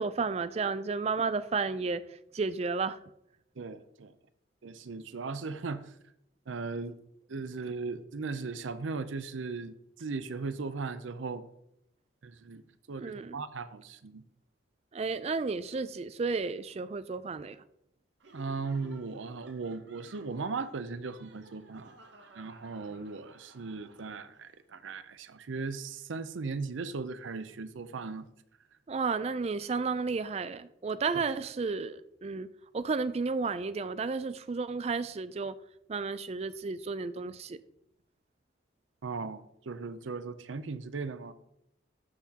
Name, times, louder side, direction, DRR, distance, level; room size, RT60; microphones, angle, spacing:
voice 1, 0.0-2.0 2.3-3.0 13.0-13.4 14.9-17.6 28.9-32.5 32.7-35.5 35.9-37.6, right 4 dB, 35° right, 0.3 m, -32 dB
voice 2, 3.6-4.1 4.6-5.9 6.5-7.0 7.3-11.4 12.2-12.6 12.9-14.2 18.3-21.9 22.3-28.3 31.1-31.2 39.0-41.3, right 4 dB, 85° right, 0.6 m, -37 dB
Laughter, 18.2-24.5, right 2 dB, 70° right, 1.0 m, -56 dB
13.0 x 5.9 x 2.9 m
head